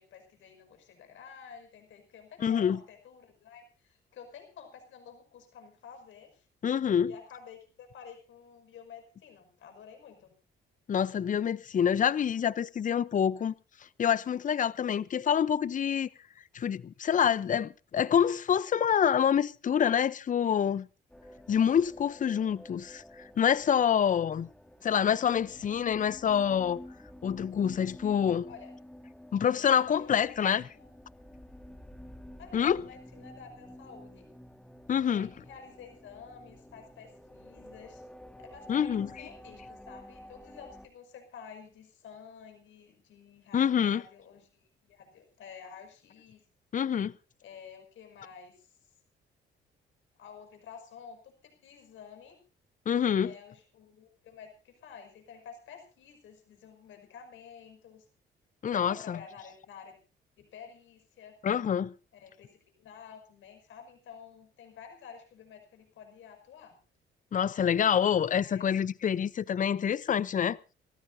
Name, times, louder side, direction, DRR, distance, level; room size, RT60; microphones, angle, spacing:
voice 1, 0.0-6.5 7.0-10.3 28.5-28.7 30.0-30.3 30.7-30.9 32.4-34.3 35.1-38.0 38.4-46.4 47.4-48.7 50.2-52.4 53.2-58.0 58.7-60.0 60.4-61.4 62.1-66.8 68.4-68.8, left 7 dB, 75° left, 5.6 m, -50 dB
voice 2, 2.4-2.8 6.6-7.1 10.9-13.5 14.0-16.1 16.5-20.9 21.5-24.5 24.8-26.8 27.2-28.5 29.3-30.6 32.5-32.8 34.9-35.3 38.7-39.1 43.5-44.0 46.7-47.1 52.9-53.3 58.6-59.2 61.4-61.9 67.3-70.6, left 8 dB, 40° left, 0.7 m, -26 dB
sound 1, 21.1-40.9, equal, 5° left, 2.5 m, -51 dB
28.0 x 14.0 x 2.7 m
cardioid pair, 90°, 20 cm